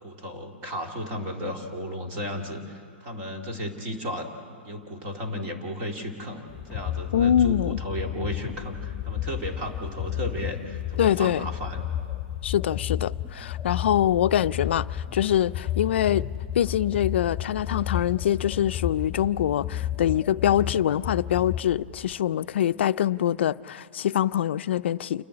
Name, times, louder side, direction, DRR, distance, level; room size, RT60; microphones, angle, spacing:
voice 1, 0.0-6.4 6.7-11.9, equal, 30° right, 2.3 m, -34 dB
sound 1, 6.5-22.1, left 11 dB, 15° left, 1.5 m, -32 dB
voice 2, 7.1-7.8 11.0-11.5 12.4-16.3 16.5-25.2, left 10 dB, 75° left, 0.4 m, -24 dB
28.5 x 11.0 x 9.7 m
hypercardioid pair, 165°, 6 cm